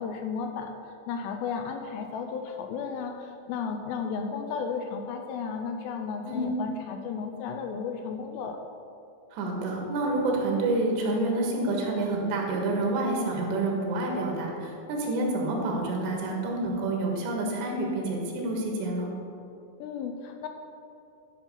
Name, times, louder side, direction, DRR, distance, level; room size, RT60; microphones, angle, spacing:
voice 1, 0.0-8.6 19.8-20.5, left 5 dB, 85° left, 4 dB, 2.6 m, -34 dB
voice 2, 6.2-6.6 9.3-19.1, right 2 dB, 75° right, 0 dB, 3.5 m, -28 dB
11.5 x 5.7 x 5.4 m, 2.6 s
omnidirectional pair, 5.2 m